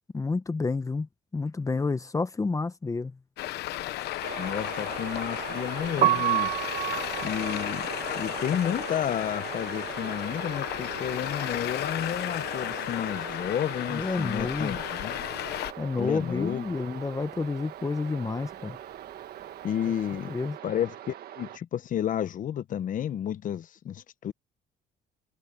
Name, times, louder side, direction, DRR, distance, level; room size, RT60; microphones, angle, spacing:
voice 1, 0.0-3.2 13.9-14.8 15.8-18.8 20.3-20.6, left 4 dB, 20° left, 1.0 m, -30 dB
Traffic noise roadway noise, 3.4-15.7, left 15 dB, 75° left, 1.1 m, -34 dB
sound 1, 4.2-21.6, right 12 dB, 65° right, 1.7 m, -41 dB
voice 2, 4.4-6.5 7.2-7.9 8.1-15.2 16.0-16.6 19.6-20.3 20.6-24.3, left 10 dB, 50° left, 1.1 m, -31 dB
Piano, 5.9-11.8 12.1-13.7 13.9-20.4, right 12 dB, 45° right, 1.2 m, -32 dB
cardioid pair, 110°, 17 cm